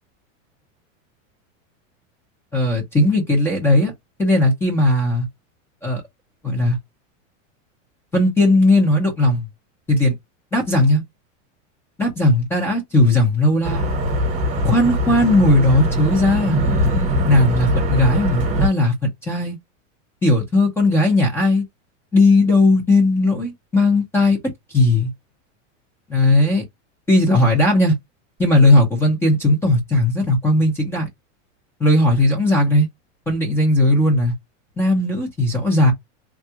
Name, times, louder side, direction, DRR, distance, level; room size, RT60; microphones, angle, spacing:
voice 1, 2.5-3.9 4.2-5.3 5.8-6.0 6.4-6.8 8.1-9.5 9.9-10.1 10.5-11.0 12.0-13.9 14.6-16.6 17.3-18.9 19.2-19.6 20.2-21.6 22.1-24.4 24.7-25.1 26.1-26.6 27.1-28.0 28.4-31.1 31.8-32.9 33.3-34.3 34.8-35.9, left 2 dB, 5° left, 0.5 m, -17 dB
sound 1, 13.6-18.7, equal, 15° right, 0.9 m, -21 dB
3.5 x 2.2 x 2.8 m
supercardioid pair, 175°, 39 cm